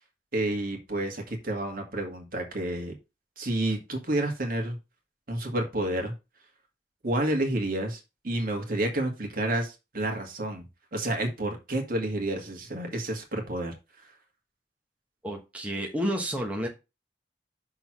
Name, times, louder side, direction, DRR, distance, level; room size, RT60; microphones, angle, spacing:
voice 1, 0.3-2.9 3.4-4.8 5.3-6.1 7.0-8.0 8.2-10.7 10.9-13.7, right 1 dB, 55° right, 3 dB, 1.9 m, -29 dB
voice 2, 15.2-16.7, equal, 10° right, 1 dB, 1.1 m, -30 dB
6.1 x 3.8 x 6.1 m, 0.26 s
head